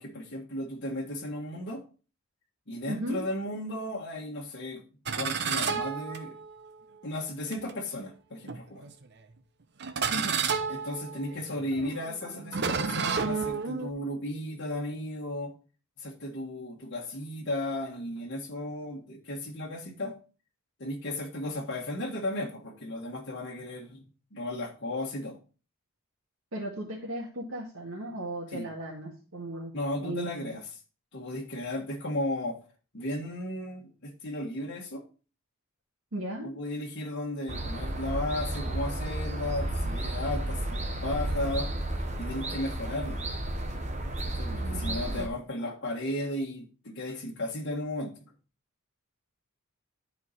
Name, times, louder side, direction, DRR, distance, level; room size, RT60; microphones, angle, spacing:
voice 1, 0.0-1.8 2.7-4.8 5.2-6.3 7.0-8.9 10.7-15.5 16.0-20.1 20.8-24.0 24.3-25.4 28.5-28.7 29.7-30.6 31.1-32.6 32.9-35.0 36.4-41.7 42.2-43.3 44.2-48.2, left 1 dB, 55° left, -1 dB, 1.6 m, -35 dB
voice 2, 2.8-3.2 10.1-10.4 12.2-12.3 26.5-29.7 30.0-30.5 36.1-36.5 44.5-45.3, right 1 dB, 75° right, -5 dB, 2.1 m, -36 dB
sound 1, 5.0-6.7 7.5-7.7 8.5-9.0 9.8-13.9, right 6 dB, 50° right, 0.7 m, -31 dB
sound 2, 37.5-45.3, right 1 dB, 35° right, 1.1 m, -32 dB
11.0 x 4.7 x 4.1 m, 0.36 s
head